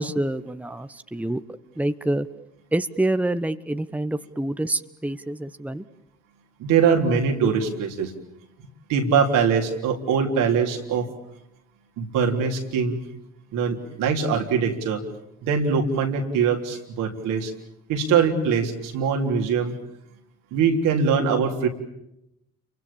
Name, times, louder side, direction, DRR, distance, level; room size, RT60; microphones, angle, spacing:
voice 1, 0.0-1.4 1.8-2.3 2.7-5.8, right 1 dB, 5° right, 11 dB, 1.3 m, -26 dB
voice 2, 6.6-8.1 8.9-11.1 12.0-13.0 13.5-15.0 15.4-17.5 17.9-19.8 20.5-21.7, right 6 dB, 75° right, 3 dB, 3.7 m, -22 dB
29.0 x 24.0 x 7.3 m, 0.83 s
hypercardioid pair, 50°, 32 cm